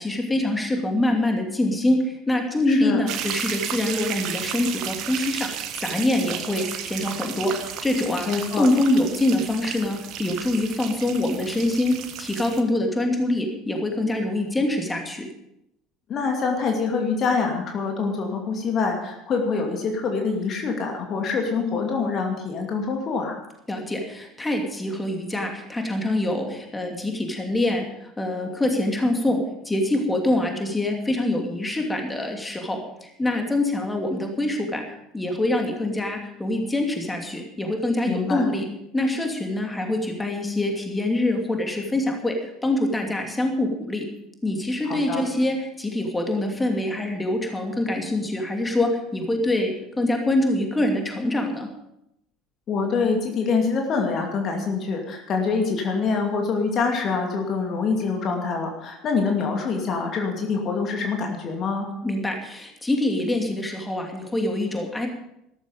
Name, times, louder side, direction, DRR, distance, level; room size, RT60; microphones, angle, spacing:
voice 1, 0.0-8.3 8.5-15.3 23.7-38.7 38.9-44.0 44.4-51.7 62.0-65.1, left 1 dB, 10° left, 3 dB, 2.7 m, -25 dB
voice 2, 2.7-3.0 8.3-8.7 16.1-23.4 38.1-38.4 44.8-45.2 52.7-61.9, left 4 dB, 40° left, 2 dB, 2.6 m, -25 dB
sound 1, 3.1-12.6, right 9 dB, 50° right, 1.4 m, -33 dB
14.0 x 13.5 x 5.2 m, 0.82 s
figure-of-eight pair, 65°, 0 cm